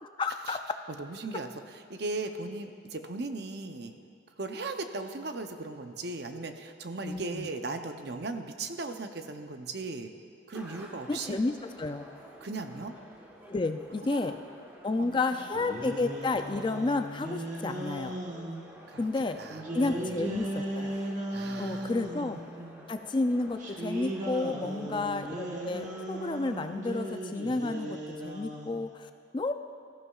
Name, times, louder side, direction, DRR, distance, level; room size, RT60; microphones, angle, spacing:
voice 1, 0.0-0.6 7.0-7.5 11.1-12.1 13.5-14.4 14.8-18.1 19.0-19.4 19.7-21.0 21.6-22.4 22.9-29.5, left 3 dB, 25° left, 8 dB, 0.3 m, -31 dB
voice 2, 0.9-3.9 4.4-10.1 10.5-11.4 12.4-13.0 14.0-14.3 15.0-15.2 18.9-19.1 19.4-20.0 21.3-21.9 22.6-22.8 24.5-25.1, right 3 dB, 55° right, 7 dB, 0.7 m, -38 dB
sound 1, 10.5-26.7, equal, 10° right, 1.2 m, -50 dB
sound 2, 15.4-18.6 19.5-22.5 23.6-28.8, right 1 dB, 40° right, 1.2 m, -37 dB
17.5 x 14.0 x 2.4 m, 2.6 s
head